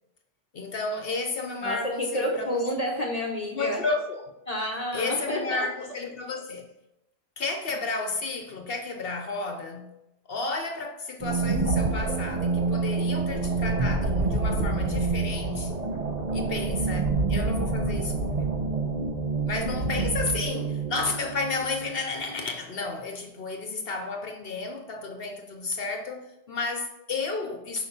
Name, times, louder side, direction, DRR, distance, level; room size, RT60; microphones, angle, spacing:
voice 1, 0.5-2.6 3.5-4.2 4.9-6.7 7.4-9.9 10.3-15.7 16.3-18.5 19.4-27.9, left 3 dB, 60° left, 1.0 m, -32 dB
voice 2, 1.6-3.8 4.5-5.7 16.3-16.6, equal, 35° left, 1.1 m, -30 dB
sound 1, 11.2-22.2, right 3 dB, 40° right, 1.1 m, -27 dB
6.8 x 5.0 x 5.5 m
omnidirectional pair, 1.1 m